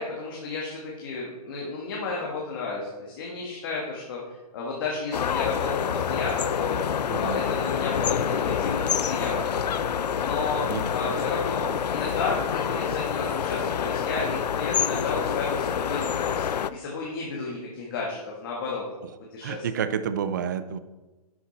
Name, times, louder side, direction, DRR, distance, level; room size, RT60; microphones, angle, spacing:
voice 1, 0.0-4.2 4.5-6.8 7.1-9.5 10.2-10.7 10.9-18.8 19.3-19.7, left 4 dB, 35° left, -3 dB, 1.8 m, -32 dB
sound 1, 5.1-16.7, left 8 dB, 90° left, 0.6 m, -27 dB
voice 2, 7.1-7.4 10.7-10.8 19.0-19.1 19.4-20.8, right 8 dB, 30° right, 12 dB, 0.5 m, -29 dB
11.0 x 8.5 x 4.2 m, 1.2 s
hypercardioid pair, 170°, 20 cm